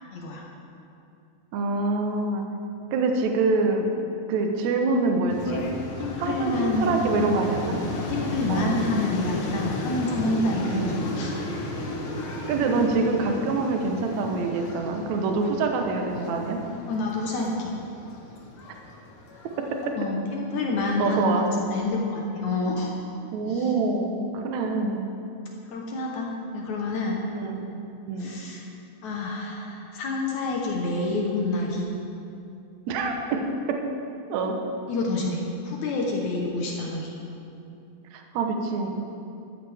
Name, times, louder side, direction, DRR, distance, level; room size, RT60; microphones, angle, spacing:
voice 1, 0.1-0.4 6.0-7.0 8.1-11.3 16.9-17.7 20.0-22.9 23.5-23.7 25.7-27.2 28.2-28.6 29.0-31.9 34.9-37.2, left 2 dB, 65° left, -1 dB, 2.0 m, -28 dB
voice 2, 1.5-2.4 2.9-3.9 4.3-5.7 6.2-7.8 8.5-8.8 10.7-11.0 12.5-16.6 19.6-20.0 21.0-21.5 23.3-25.0 27.3-27.6 28.1-28.3 32.9-33.8 34.3-34.6 38.1-38.9, right 3 dB, 70° right, 3 dB, 1.8 m, -25 dB
sound 1, 5.3-19.9, left 1 dB, 90° left, 1.1 m, -34 dB
13.5 x 13.0 x 3.5 m, 2.7 s
omnidirectional pair, 4.4 m